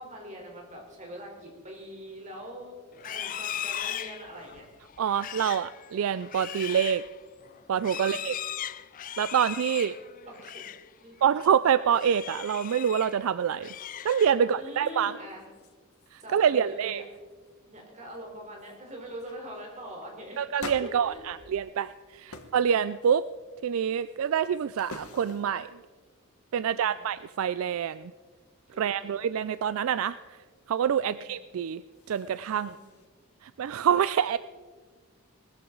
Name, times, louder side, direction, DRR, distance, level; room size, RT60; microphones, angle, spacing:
voice 1, 0.0-2.7 3.0-4.7 7.9-8.2 9.7-9.8 10.3-10.6 11.0-11.2 14.4-15.4 16.2-17.0 17.6-20.4 20.8-21.2 22.3-22.4 26.6-27.1 28.7-29.2 31.0-31.3 32.6-33.0, equal, 30° right, 0 dB, 3.7 m, -43 dB
Livestock farm animals working animals, 2.9-10.9 11.2-11.5 11.9-13.2 13.5-14.6, left 10 dB, 35° left, 0.3 m, -38 dB
voice 2, 5.0-7.0 7.7-8.4 9.2-10.0 11.2-13.7 14.0-15.1 16.1-17.0 20.4-23.2 23.6-25.7 26.5-28.1 28.8-30.4 30.7-31.8 32.1-32.8 33.4-34.4, right 8 dB, 65° right, 15 dB, 0.3 m, -26 dB
sound 1, 14.8-14.9 15.3-16.1 16.4-16.7 17.1-17.5 18.1-18.2 18.6-18.8 19.2-19.4 20.6-22.0 22.3-22.6 23.0-23.5 24.1-25.7 31.7-33.1, left 3 dB, 75° left, 1.3 m, -46 dB
20.0 x 14.0 x 3.9 m, 1.5 s
head